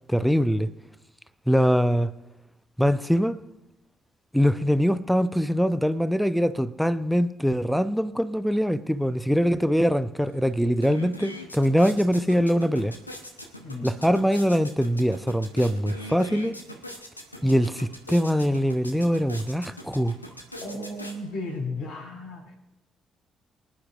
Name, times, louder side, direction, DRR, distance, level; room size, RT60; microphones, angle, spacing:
voice 1, 0.1-0.7 1.5-2.1 2.8-3.4 4.3-12.9 13.8-16.6 17.4-20.2, equal, ahead, 0.7 m, -23 dB
sound 1, 10.3-10.4 10.7-21.6, left 1 dB, 90° left, 0.9 m, -42 dB
voice 2, 20.6-22.6, left 2 dB, 60° left, 4.5 m, -34 dB
24.5 x 10.5 x 2.5 m
figure-of-eight pair, 45°, 0 cm